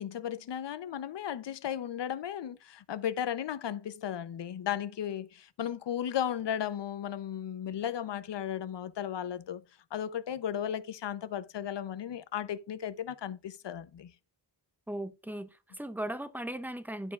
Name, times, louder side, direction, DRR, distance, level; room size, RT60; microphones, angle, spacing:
voice 1, 0.0-9.6 9.9-14.1, left 9 dB, 70° left, 0.7 m, -35 dB
voice 2, 14.9-17.1, right 1 dB, 5° right, 0.6 m, -37 dB
11.5 x 4.7 x 2.4 m
wide cardioid pair, 115°, 44 cm